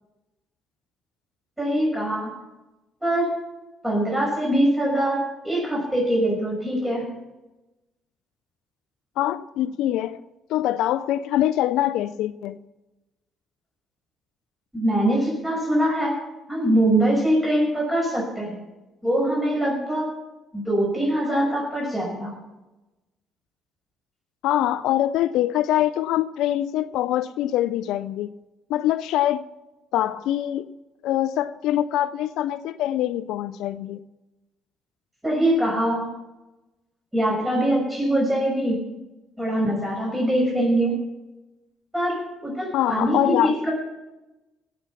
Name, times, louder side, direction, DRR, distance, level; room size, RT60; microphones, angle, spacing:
voice 1, 1.6-2.3 3.0-3.3 3.8-7.1 14.7-16.2 16.5-18.6 19.0-20.1 20.5-22.3 35.2-36.1 37.1-38.8 39.4-41.1 41.9-43.7, right 1 dB, 15° right, 6.1 m, -23 dB
voice 2, 9.2-10.2 10.5-12.6 24.4-28.3 28.7-29.4 29.9-30.8 31.0-34.0 42.7-43.6, left 12 dB, 70° left, 0.4 m, -24 dB
17.0 x 7.1 x 7.1 m
hypercardioid pair, 55°, 0 cm